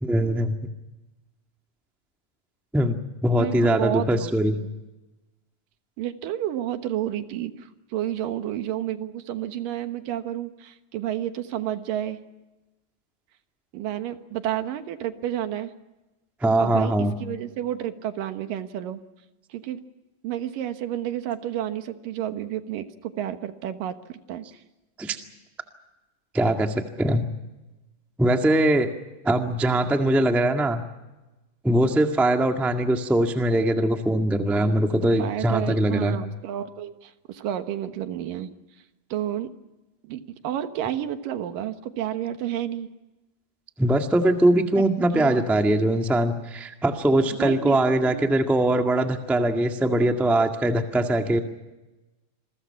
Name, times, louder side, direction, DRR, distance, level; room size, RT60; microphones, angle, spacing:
voice 1, 0.0-0.5 2.7-4.6 16.4-17.1 25.0-25.2 26.3-27.2 28.2-28.9 29.2-30.8 31.6-36.2 43.8-51.4, right 1 dB, ahead, 4 dB, 0.5 m, -22 dB
voice 2, 3.3-4.7 6.0-12.2 13.7-15.7 16.6-16.9 17.2-19.0 19.5-19.8 20.2-24.6 35.2-38.5 39.1-39.5 40.0-42.9 44.7-44.8 45.1-45.4 47.4-48.4, right 11 dB, 75° right, 9 dB, 2.9 m, -30 dB
28.0 x 22.5 x 5.8 m, 1.1 s
omnidirectional pair, 4.0 m